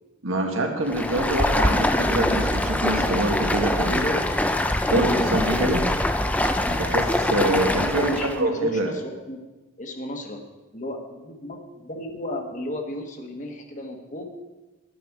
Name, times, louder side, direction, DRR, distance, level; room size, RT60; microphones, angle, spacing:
voice 1, 0.2-4.2 4.9-5.8 6.7-8.1 8.4-8.9, right 2 dB, 85° right, 2 dB, 1.7 m, -25 dB
Stream, 0.8-8.4, left 1 dB, 5° left, 0.4 m, -23 dB
voice 2, 3.8-4.4 8.0-9.4 9.8-10.4 10.7-14.5, left 1 dB, 35° left, 3 dB, 1.3 m, -34 dB
11.5 x 9.2 x 4.7 m, 1.1 s
head